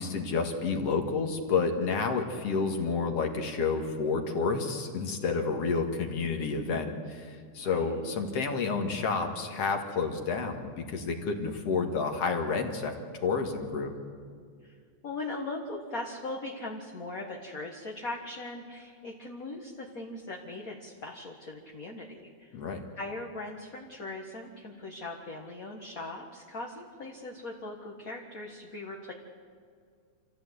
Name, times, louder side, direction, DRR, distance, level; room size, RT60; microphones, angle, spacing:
voice 1, 0.0-12.9 13.2-13.9 22.5-22.8, left 4 dB, 55° left, 4 dB, 2.8 m, -30 dB
voice 2, 7.6-7.9 14.6-14.8 15.0-22.6 23.0-29.1, left 2 dB, 35° left, -1 dB, 1.6 m, -40 dB
27.0 x 15.5 x 8.3 m, 2.2 s
omnidirectional pair, 3.5 m